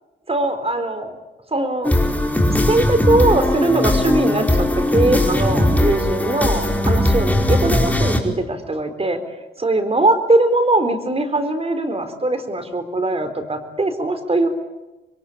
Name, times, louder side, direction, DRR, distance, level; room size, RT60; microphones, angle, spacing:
voice 1, 0.3-1.1 1.5-2.0 2.6-9.2 9.6-14.5, right 2 dB, 30° right, 9 dB, 4.1 m, -20 dB
sound 1, 1.8-8.2, left 1 dB, 10° left, 4.6 m, -18 dB
27.0 x 23.0 x 8.7 m, 1.0 s
cardioid pair, 75°, 19 cm